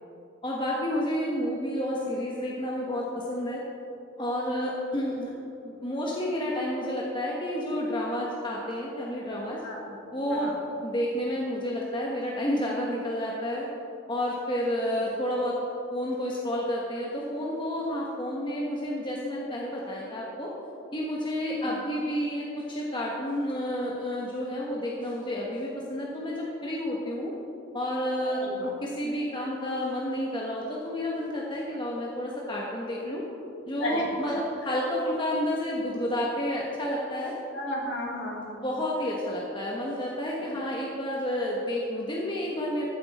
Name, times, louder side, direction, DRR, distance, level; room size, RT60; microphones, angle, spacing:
voice 1, 0.4-3.6 4.2-5.3 5.6-9.6 10.1-10.5 10.8-13.7 14.1-15.6 15.9-20.5 20.9-27.3 27.7-33.2 33.6-37.3 38.6-42.8, left 1 dB, 25° left, -4 dB, 1.2 m, -30 dB
voice 2, 28.2-28.7 33.8-34.4 37.5-38.6, equal, 55° left, -3 dB, 2.7 m, -34 dB
14.0 x 9.6 x 4.2 m, 2.8 s
head